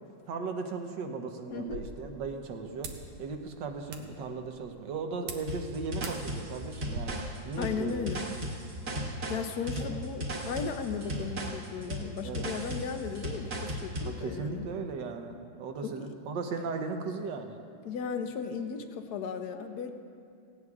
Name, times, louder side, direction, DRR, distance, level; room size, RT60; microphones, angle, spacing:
voice 1, 0.3-2.9 3.2-8.1 9.8-10.0 12.2-12.5 14.0-17.6, right 4 dB, 65° right, 5 dB, 1.4 m, -37 dB
voice 2, 1.5-1.8 7.6-8.2 9.3-14.7 15.8-16.1 17.8-19.9, left 6 dB, 65° left, 6 dB, 1.0 m, -36 dB
sound 1, 1.5-7.0, right 4 dB, 85° right, 1.9 m, -46 dB
sound 2, 5.5-14.2, equal, 45° right, 2.0 m, -36 dB
17.5 x 17.0 x 2.4 m, 2.4 s
omnidirectional pair, 2.3 m